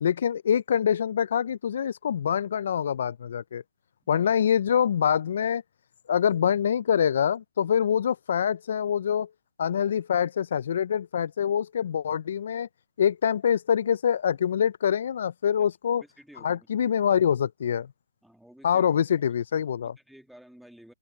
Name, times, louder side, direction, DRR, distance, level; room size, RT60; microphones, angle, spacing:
voice 1, 0.0-3.6 4.1-5.6 6.1-9.3 9.6-12.7 13.0-16.0 16.4-17.9 18.6-20.0, left 8 dB, 55° left, 0.4 m, -25 dB
voice 2, 16.0-16.7 18.2-18.9 20.0-20.9, equal, ahead, 2.3 m, -52 dB
hypercardioid pair, 150°, 0 cm